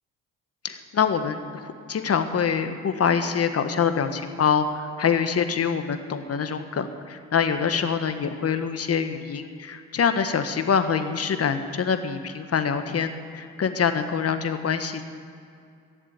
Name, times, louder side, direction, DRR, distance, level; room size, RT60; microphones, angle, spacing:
voice 1, 0.6-15.0, left 6 dB, 40° left, 9 dB, 1.4 m, -25 dB
15.0 x 7.5 x 8.8 m, 2.3 s
hypercardioid pair, 65°, 37 cm